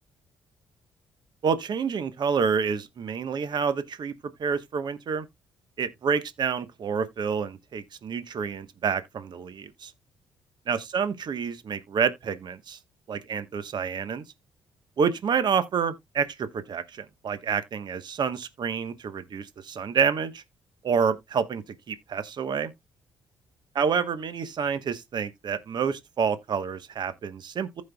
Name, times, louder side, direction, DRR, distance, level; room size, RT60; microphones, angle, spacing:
voice 1, 1.4-4.1 4.4-5.3 5.8-9.9 10.7-12.8 13.1-14.2 15.0-20.4 20.8-22.7 23.8-27.8, right 6 dB, 55° right, 1.0 m, -28 dB
15.0 x 5.3 x 2.2 m
cardioid pair, 75°, 9 cm